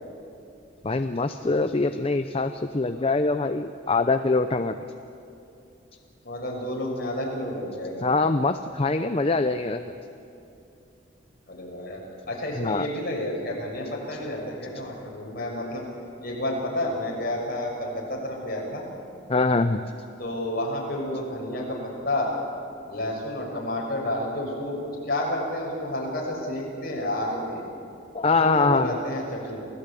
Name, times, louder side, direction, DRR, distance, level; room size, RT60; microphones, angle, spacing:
voice 1, 0.8-4.7 8.0-9.8 12.6-12.9 19.3-19.8 28.1-28.9, left 3 dB, 30° left, 8 dB, 0.6 m, -23 dB
voice 2, 6.2-8.1 11.5-15.8 16.2-18.8 20.2-22.3 22.9-27.6 28.4-29.6, left 1 dB, 50° left, -2 dB, 6.0 m, -30 dB
27.5 x 17.0 x 8.4 m, 2.7 s
head